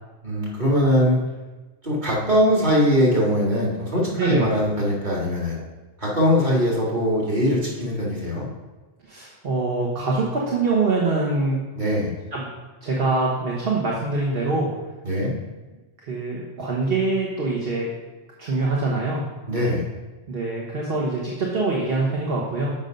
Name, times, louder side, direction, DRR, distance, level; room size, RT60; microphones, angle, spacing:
voice 1, 0.2-1.2 1.8-5.6 6.0-8.5 11.8-12.1 15.0-15.3 19.5-19.9, equal, 40° right, -4 dB, 2.2 m, -21 dB
voice 2, 4.1-4.5 9.0-11.6 12.3-12.5 12.8-14.7 16.0-17.9 18.4-19.2 20.3-22.7, right 3 dB, 55° right, -3 dB, 1.4 m, -24 dB
7.1 x 5.5 x 5.2 m, 1.2 s
omnidirectional pair, 1.2 m